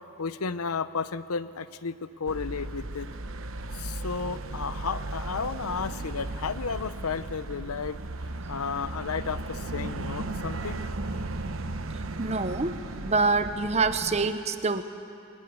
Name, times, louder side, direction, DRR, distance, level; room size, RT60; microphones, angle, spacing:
voice 1, 0.2-3.1 3.7-8.0 8.5-10.8, left 5 dB, 80° left, 14 dB, 0.7 m, -33 dB
sound 1, 2.3-14.3, right 2 dB, 65° right, 1.0 m, -36 dB
voice 2, 12.2-12.8 13.0-14.8, right 3 dB, 30° right, 10 dB, 0.9 m, -26 dB
23.0 x 17.5 x 9.7 m, 2.5 s
head